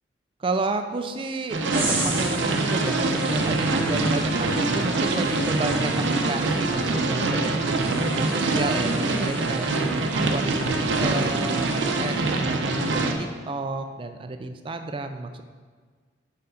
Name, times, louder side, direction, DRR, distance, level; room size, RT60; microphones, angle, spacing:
voice 1, 0.4-15.4, right 3 dB, 25° right, 7 dB, 0.3 m, -31 dB
sound 1, 1.5-13.1, right 2 dB, 75° right, 0.6 m, -24 dB
sound 2, 1.7-12.4 12.7-13.1, right 2 dB, 10° right, 0.8 m, -39 dB
5.3 x 4.6 x 5.1 m, 1.6 s
head